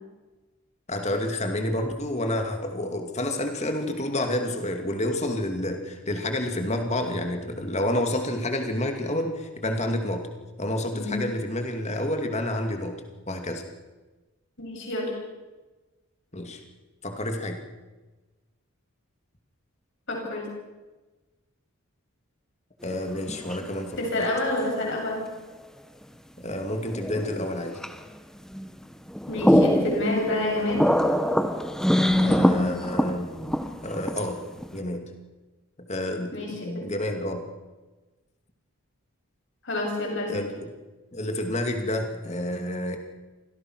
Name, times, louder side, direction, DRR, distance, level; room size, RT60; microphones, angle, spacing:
voice 1, 0.9-10.3 10.6-13.0 13.3-13.6 16.3-16.6 17.0-17.6 22.8-24.3 26.4-27.8 32.2-33.3 33.7-34.4 34.7-35.1 35.8-36.3 36.6-37.5 40.3-40.7 41.1-43.0, left 1 dB, 30° left, 5 dB, 2.4 m, -29 dB
voice 2, 10.9-11.2 14.6-15.1 20.1-20.5 24.0-25.2 29.3-30.8 36.3-36.9 39.6-40.3, left 2 dB, 55° left, -1 dB, 7.9 m, -28 dB
sound 1, 22.9-23.7 24.6-24.7 26.5-27.5 27.8-28.0 28.5-28.8 29.1-34.8, equal, 5° left, 1.0 m, -24 dB
26.0 x 17.0 x 6.3 m, 1.2 s
head